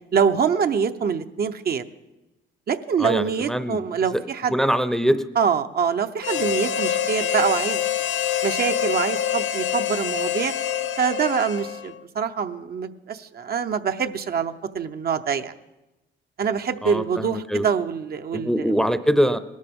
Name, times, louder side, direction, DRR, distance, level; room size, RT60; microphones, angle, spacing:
voice 1, 0.1-1.8 2.7-4.5 5.4-7.8 8.4-10.5 11.0-15.5 16.4-18.8, right 6 dB, 50° right, 8 dB, 0.7 m, -25 dB
voice 2, 3.0-3.8 4.1-4.2 4.5-5.2 16.8-17.7 18.3-19.4, equal, ahead, 11 dB, 0.6 m, -23 dB
Harmonica, 6.2-12.0, left 9 dB, 70° left, 0.8 m, -26 dB
20.0 x 13.0 x 3.6 m, 0.98 s
cardioid pair, 90°, 20 cm